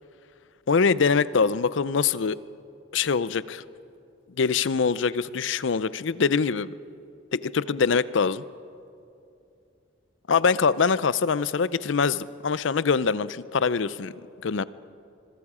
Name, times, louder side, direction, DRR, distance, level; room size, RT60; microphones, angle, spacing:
voice 1, 0.7-2.4 2.9-3.6 4.4-6.7 7.3-8.4 10.3-14.1 14.4-14.6, left 5 dB, 70° left, 17 dB, 0.5 m, -23 dB
25.0 x 22.0 x 4.9 m, 2.6 s
head